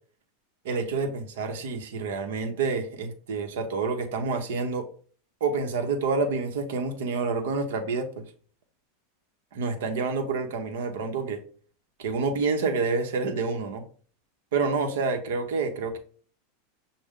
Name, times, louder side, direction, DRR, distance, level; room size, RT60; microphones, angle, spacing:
voice 1, 0.6-4.9 5.4-8.2 9.5-11.4 12.0-13.8 14.5-16.0, right 4 dB, 75° right, 6 dB, 0.8 m, -28 dB
6.1 x 2.1 x 3.6 m, 0.44 s
hypercardioid pair, 110°, 0 cm